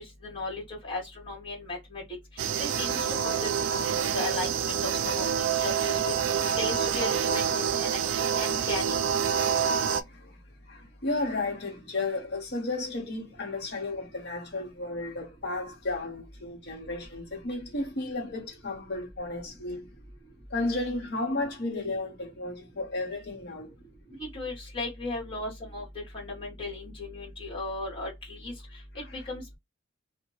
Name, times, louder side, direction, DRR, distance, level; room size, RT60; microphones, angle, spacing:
voice 1, 0.0-2.0 2.3-3.5 3.8-8.0 8.4-9.0 24.2-25.8 26.1-28.5 28.9-29.6, left 2 dB, 25° left, 1.4 m, -36 dB
sound 1, 2.4-10.0, right 7 dB, 65° right, 0.3 m, -27 dB
voice 2, 9.4-10.4 10.7-19.9 20.5-23.7, left 2 dB, 55° left, 1.0 m, -33 dB
2.7 x 2.1 x 3.0 m
head